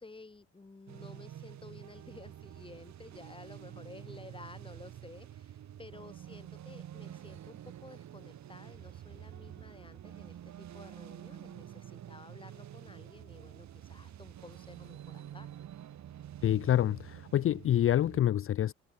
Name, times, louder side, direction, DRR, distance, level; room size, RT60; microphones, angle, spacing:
voice 1, 0.0-15.5, left 3 dB, 15° left, 1.5 m, -53 dB
sound 1, 0.9-18.2, right 11 dB, 65° right, 2.8 m, -48 dB
voice 2, 16.4-18.7, left 11 dB, 45° left, 0.5 m, -27 dB
cardioid pair, 90°, 30 cm